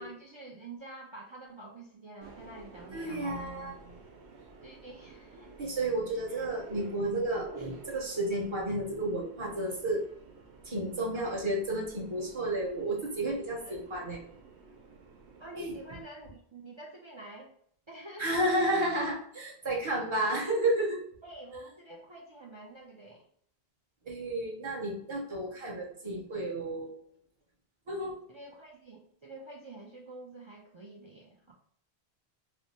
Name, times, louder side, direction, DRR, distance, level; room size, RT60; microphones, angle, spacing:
voice 1, 0.0-3.5 4.6-5.6 6.4-6.5 11.1-11.3 13.6-13.8 15.4-17.5 17.9-18.5 21.2-23.3 28.3-31.5, right 2 dB, 50° right, -1 dB, 0.3 m, -48 dB
Subway metro underground, 2.2-16.0, right 3 dB, 90° right, 0.9 m, -52 dB
voice 2, 2.9-3.7 5.6-10.0 10.6-14.2 15.6-15.7 18.2-21.0 24.0-26.9 27.9-28.1, right 1 dB, 30° right, -3 dB, 0.9 m, -31 dB
3.2 x 2.0 x 4.1 m, 0.63 s
omnidirectional pair, 1.1 m